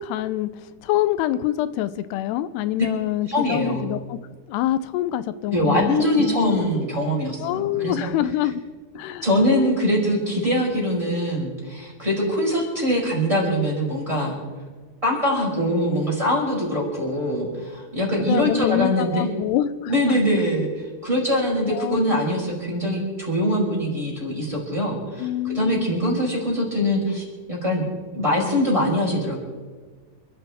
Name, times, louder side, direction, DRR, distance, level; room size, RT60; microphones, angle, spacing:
voice 1, 0.0-4.2 4.5-6.7 7.4-8.6 9.0-9.3 18.3-20.2 21.7-22.2 25.2-25.9, left 12 dB, 90° left, 14 dB, 2.7 m, -26 dB
voice 2, 3.3-3.8 5.5-8.1 9.2-14.4 15.0-19.3 19.9-20.7 21.0-29.4, equal, 10° right, -4 dB, 4.7 m, -23 dB
28.5 x 13.0 x 3.5 m, 1.5 s
omnidirectional pair, 4.7 m